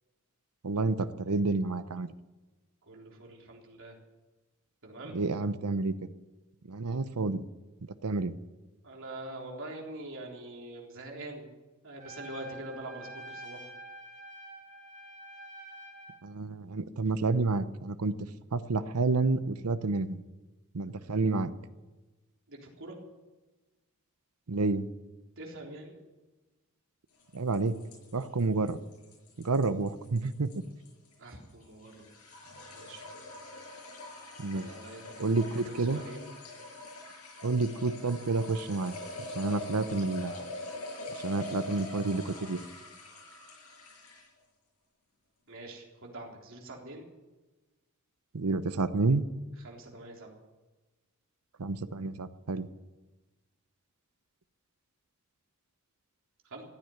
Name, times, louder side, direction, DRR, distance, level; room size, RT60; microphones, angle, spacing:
voice 1, 0.6-2.1 5.1-5.9 6.7-7.4 8.0-8.3 16.2-18.1 18.5-20.2 20.7-21.5 24.5-24.9 27.3-27.8 28.1-28.8 29.4-30.6 34.4-34.7 35.2-36.0 37.4-38.9 39.4-40.4 41.2-42.6 48.3-49.2 51.6-52.7, right 3 dB, 85° right, 13 dB, 0.8 m, -29 dB
voice 2, 2.8-4.0 4.8-5.2 8.8-11.5 11.8-13.7 22.5-23.0 25.4-25.9 31.2-32.1 32.7-33.0 34.5-35.3 35.5-36.3 45.5-47.1 49.6-50.4 56.4-56.6, right 1 dB, 60° right, 0 dB, 3.7 m, -44 dB
Trumpet, 12.0-16.2, right 1 dB, 40° right, 4.0 m, -47 dB
sound 1, 27.2-44.4, left 2 dB, 85° left, 6.4 m, -44 dB
15.0 x 9.6 x 9.9 m, 1.2 s
head